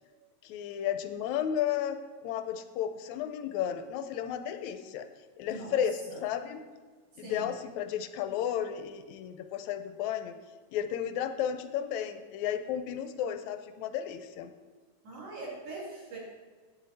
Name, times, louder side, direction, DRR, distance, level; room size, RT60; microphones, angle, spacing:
voice 1, 0.4-2.0 2.2-5.1 5.4-6.6 7.2-10.4 10.7-14.5, left 9 dB, 80° left, 9 dB, 1.8 m, -33 dB
voice 2, 5.4-5.8 6.1-6.2 7.1-7.5 15.0-16.2, right 2 dB, 50° right, -6 dB, 3.6 m, -42 dB
8.6 x 8.5 x 4.1 m, 1.4 s
omnidirectional pair, 3.7 m